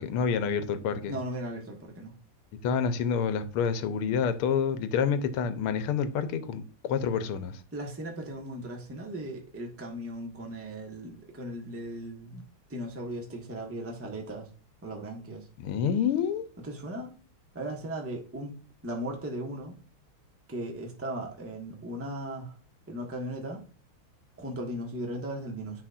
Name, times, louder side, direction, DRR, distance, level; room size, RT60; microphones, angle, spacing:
voice 1, 0.0-1.1 2.6-7.6 15.6-16.4, left 7 dB, 85° left, 1.6 m, -28 dB
voice 2, 1.1-2.1 7.7-12.4 12.7-14.5 14.8-15.5 16.6-17.1 17.5-18.5 18.8-19.8 20.5-22.5 22.9-23.6 24.4-25.8, right 1 dB, 10° right, 1.1 m, -37 dB
10.5 x 4.3 x 2.4 m
omnidirectional pair, 2.4 m